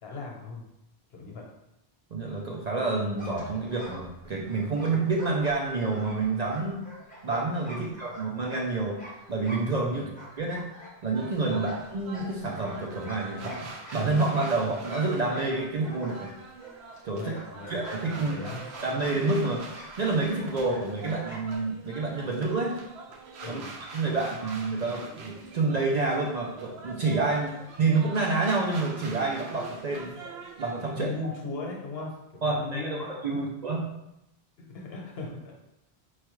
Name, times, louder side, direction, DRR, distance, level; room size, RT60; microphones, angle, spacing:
voice 1, 0.0-0.6 1.1-1.4 7.7-7.9 9.9-10.1 11.5-11.6 17.1-17.7 18.1-18.7 23.4-23.7 24.0-24.3 30.9-32.1 32.4-33.5 34.6-35.5, left 3 dB, 70° left, -1 dB, 1.0 m, -38 dB
voice 2, 2.1-6.8 7.2-9.0 9.3-10.1 10.4-10.7 11.0-16.3 17.0-17.3 17.7-18.3 18.8-19.6 20.0-22.8 23.5-23.6 23.9-30.2 30.6-31.1 32.4-33.8, right 3 dB, 50° right, -2 dB, 0.5 m, -28 dB
sound 1, 3.2-9.9 10.1-17.0 17.3-21.6, right 1 dB, 10° left, 0.7 m, -46 dB
sound 2, 11.1-30.9, right 3 dB, 80° right, 0.8 m, -44 dB
4.5 x 2.3 x 3.0 m, 0.87 s
omnidirectional pair, 1.1 m